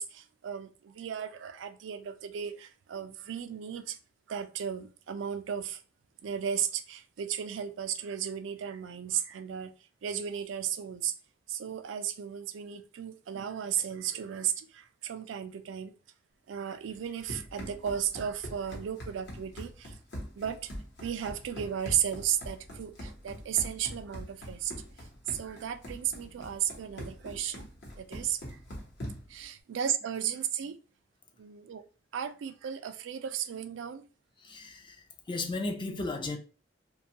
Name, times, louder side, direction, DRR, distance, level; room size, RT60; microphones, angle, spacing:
voice 1, 0.0-4.0 4.3-5.8 6.2-9.7 10.0-11.1 11.5-15.9 16.5-20.0 20.4-20.7 21.0-27.7 28.0-28.6 29.3-30.8 31.4-31.8 32.1-34.0, right 9 dB, 90° right, 0.3 m, -35 dB
Run, 16.9-29.4, equal, 65° left, 0.9 m, -43 dB
voice 2, 34.4-36.4, left 2 dB, 25° left, 0.4 m, -35 dB
2.5 x 2.2 x 2.8 m
head